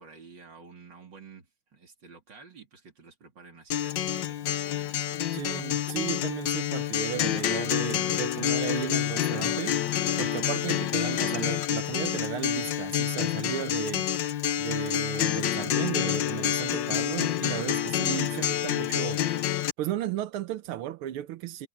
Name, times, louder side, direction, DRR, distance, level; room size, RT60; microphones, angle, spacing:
voice 1, 0.0-5.2, right 5 dB, 55° right, 3.8 m, -51 dB
Acoustic guitar, 3.7-19.7, left 11 dB, 65° left, 1.5 m, -28 dB
voice 2, 5.3-9.8 10.2-14.1 14.6-19.2 19.8-21.7, right 12 dB, 90° right, 1.7 m, -34 dB
omnidirectional pair, 2.3 m